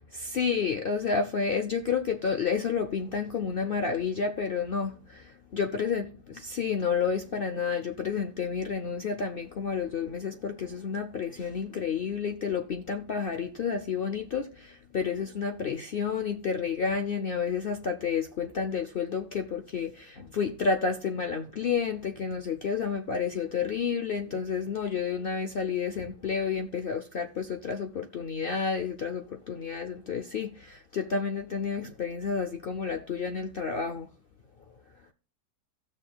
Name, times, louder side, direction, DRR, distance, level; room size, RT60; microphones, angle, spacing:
voice 1, 0.1-34.1, left 6 dB, 65° left, 0.5 m, -30 dB
17.0 x 6.4 x 2.3 m
omnidirectional pair, 1.8 m